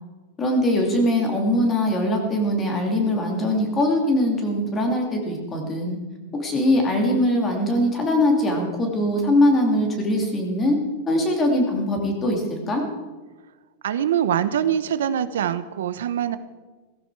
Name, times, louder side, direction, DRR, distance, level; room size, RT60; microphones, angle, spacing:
voice 1, 0.4-6.0 6.4-10.8 11.1-12.8, left 1 dB, 15° left, 2 dB, 2.6 m, -21 dB
voice 2, 13.8-16.4, right 9 dB, 90° right, 12 dB, 1.0 m, -23 dB
17.0 x 15.0 x 4.8 m, 1.3 s
supercardioid pair, 175°, 0 cm